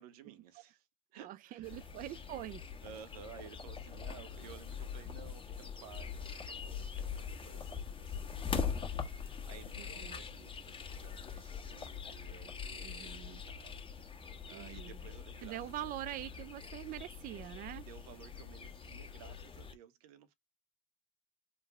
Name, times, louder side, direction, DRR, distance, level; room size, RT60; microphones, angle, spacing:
voice 1, 0.0-1.9 2.8-14.2 14.5-15.8 17.8-20.3, right 8 dB, 80° right, 1.0 m, -55 dB
voice 2, 1.2-2.6 9.8-10.2 12.8-13.4 14.5-15.0 15.4-17.9, right 14 dB, 45° right, 0.4 m, -44 dB
sound 1, 1.6-19.7, left 6 dB, 25° left, 1.5 m, -43 dB
3.5 x 2.4 x 3.1 m
supercardioid pair, 90°, 19 cm